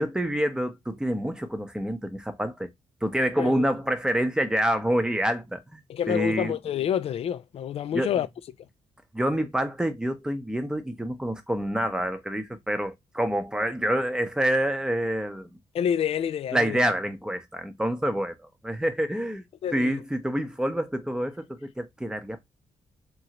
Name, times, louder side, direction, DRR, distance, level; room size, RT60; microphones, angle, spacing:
voice 1, 0.0-2.7 3.0-5.8 6.1-6.6 7.9-8.1 9.1-15.5 16.5-18.4 18.6-19.4 19.7-22.4, right 1 dB, 5° right, 0.6 m, -27 dB
voice 2, 5.9-8.3 15.7-16.8 19.6-20.0, left 9 dB, 55° left, 0.4 m, -28 dB
3.0 x 2.4 x 2.9 m
cardioid pair, 105°, 12 cm